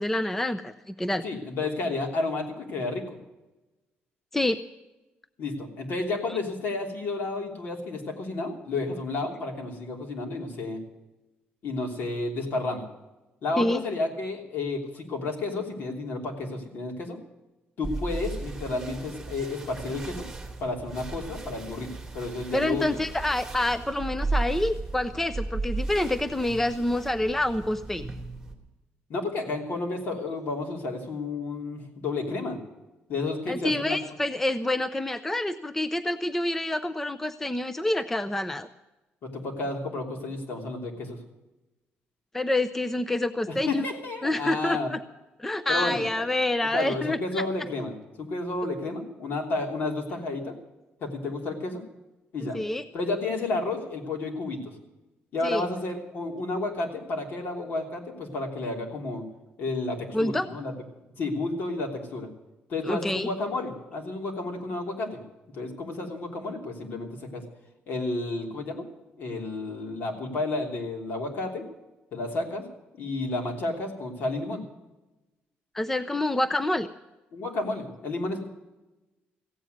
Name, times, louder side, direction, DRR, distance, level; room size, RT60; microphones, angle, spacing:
voice 1, 0.0-1.2 4.3-4.6 13.6-13.8 22.5-28.1 33.5-38.7 42.3-43.8 44.2-45.0 45.4-47.4 52.5-52.8 55.4-55.7 60.1-60.5 62.8-63.3 75.7-76.9, left 1 dB, 10° left, 12 dB, 0.5 m, -27 dB
voice 2, 1.2-3.2 5.4-10.8 11.6-12.9 13.4-17.2 17.8-20.3 20.6-21.9 22.1-23.0 29.1-32.6 33.1-34.1 39.2-41.2 43.5-44.9 45.7-46.3 46.6-50.5 51.0-51.8 52.3-52.6 52.9-54.8 55.3-59.3 59.6-60.7 61.2-62.3 62.7-65.2 65.5-67.4 67.9-68.9 69.2-71.7 72.1-72.6 73.0-74.6 77.3-78.4, left 2 dB, 55° left, 2 dB, 3.2 m, -31 dB
sound 1, 17.8-28.5, right 3 dB, 10° right, 2.3 m, -35 dB
15.5 x 8.8 x 9.2 m, 1.0 s
cardioid pair, 145°, 4 cm